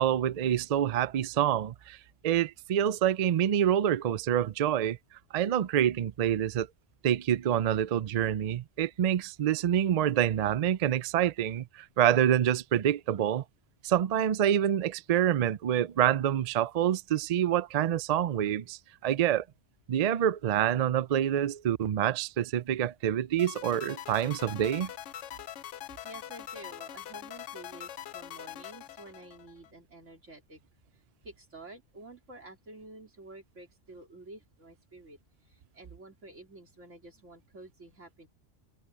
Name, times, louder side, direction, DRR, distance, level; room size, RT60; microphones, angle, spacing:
voice 1, 0.0-2.0 2.2-5.0 5.3-6.7 7.0-13.4 13.8-19.4 19.9-24.9, right 10 dB, 65° right, 0.4 m, -27 dB
sound 1, 23.4-29.7, left 11 dB, 75° left, 1.0 m, -43 dB
voice 2, 26.0-30.6 31.2-35.2 35.5-38.3, right 2 dB, 85° right, 3.9 m, -50 dB
omnidirectional pair, 1.2 m